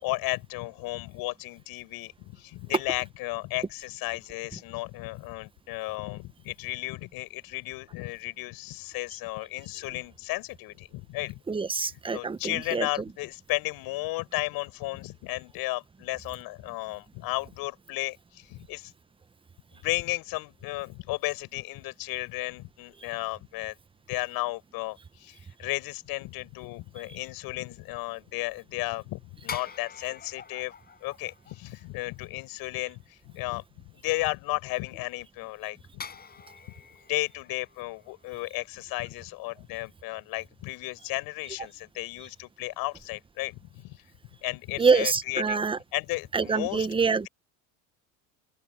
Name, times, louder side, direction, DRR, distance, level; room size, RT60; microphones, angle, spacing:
voice 1, 0.0-11.4 12.1-18.9 19.7-23.7 24.1-30.7 31.0-36.0 37.1-44.0 44.4-45.6 45.9-46.9, left 21 dB, 60° left, 7.3 m, -34 dB
voice 2, 11.5-12.9 44.8-45.8 46.3-47.3, right 5 dB, 15° right, 1.0 m, -25 dB
sound 1, 29.5-32.2 36.0-39.2 39.5-39.7, left 6 dB, 25° left, 6.2 m, -45 dB
open air
supercardioid pair, 120°, 40 cm